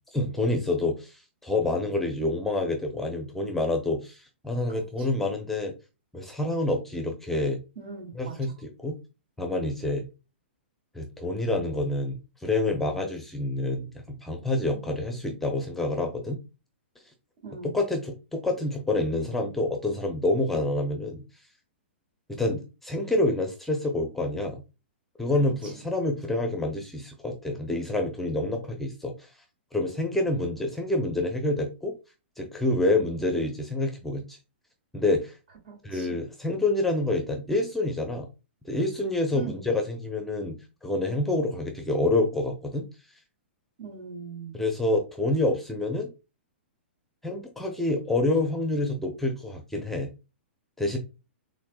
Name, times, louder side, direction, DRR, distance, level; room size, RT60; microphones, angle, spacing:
voice 1, 0.1-5.7 6.1-7.6 8.1-9.0 9.4-10.0 10.9-16.4 17.7-21.2 22.3-24.6 25.2-29.3 29.7-32.0 32.4-34.4 34.9-35.4 35.8-38.3 38.6-42.9 44.5-46.1 47.2-50.1 50.8-51.0, left 2 dB, 5° left, 3 dB, 0.7 m, -27 dB
voice 2, 4.7-5.1 7.8-8.5 14.7-14.9 17.4-17.7 25.4-25.7 32.9-33.3 35.6-36.2 39.3-39.6 43.8-44.6, right 6 dB, 55° right, 2 dB, 2.3 m, -41 dB
7.0 x 2.6 x 2.3 m, 0.29 s
figure-of-eight pair, 110°, 6 cm